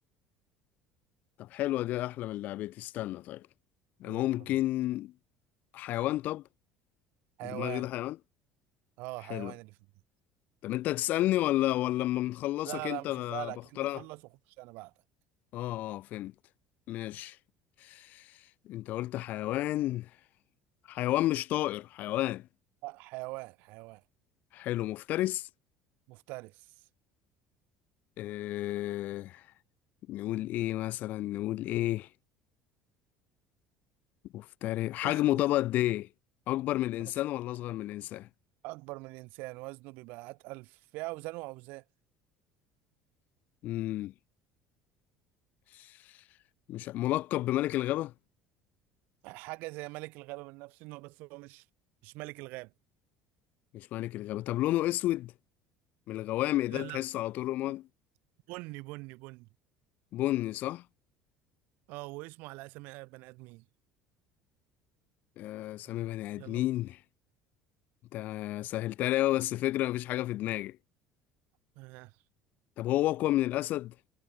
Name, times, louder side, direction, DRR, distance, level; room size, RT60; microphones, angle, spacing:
voice 1, 1.4-3.5 4.0-5.1 5.7-6.4 7.4-8.2 9.3-9.5 10.6-14.0 15.5-16.3 16.9-17.4 17.8-18.3 18.7-20.1 20.9-22.5 24.5-25.5 28.2-29.4 30.1-32.1 34.3-36.1 36.5-38.3 43.6-44.1 45.7-45.9 46.7-48.1 53.7-55.3 56.1-57.9 60.1-60.8 65.4-67.0 68.1-70.8 72.8-73.9, left 15 dB, 55° left, 0.8 m, -31 dB
voice 2, 4.0-4.6 7.4-7.9 9.0-9.8 12.6-14.2 14.5-14.9 22.8-24.0 26.1-26.7 35.0-35.4 38.6-41.8 49.2-51.6 52.0-52.7 56.7-57.0 58.5-59.5 61.9-63.6 66.4-66.6 71.8-72.1, right 24 dB, 60° right, 1.2 m, -42 dB
figure-of-eight pair, 60°, 4 cm